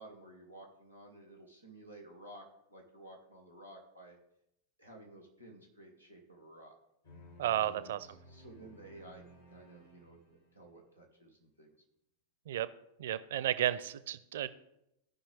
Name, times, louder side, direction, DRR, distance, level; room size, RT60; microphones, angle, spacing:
voice 1, 0.0-2.4 2.7-4.2 4.8-6.8 7.7-11.7, right 1 dB, 90° left, 0 dB, 1.8 m, -54 dB
sound 1, 7.0-10.8, equal, 65° left, 2.0 m, -57 dB
voice 2, 7.4-8.1 12.5-12.7 13.0-14.5, right 12 dB, 60° right, 15 dB, 0.5 m, -33 dB
16.5 x 5.5 x 3.4 m, 0.82 s
figure-of-eight pair, 90°, 0 cm